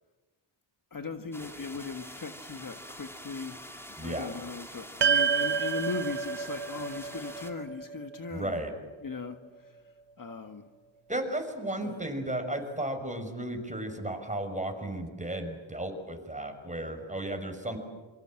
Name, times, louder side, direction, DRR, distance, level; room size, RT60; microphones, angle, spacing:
voice 1, 0.9-3.7 4.0-8.6 9.0-9.4 9.6-9.8 10.2-10.7 11.8-12.1, left 4 dB, 40° left, 6 dB, 1.6 m, -38 dB
sound 1, 1.3-7.5, equal, 5° left, 3.2 m, -46 dB
voice 2, 4.0-4.3 8.3-8.7 11.1-17.8, right 1 dB, 15° right, 5 dB, 5.9 m, -34 dB
sound 2, 5.0-9.5, right 6 dB, 55° right, 1.1 m, -30 dB
27.5 x 24.5 x 7.7 m, 1.3 s
cardioid pair, 75°, 48 cm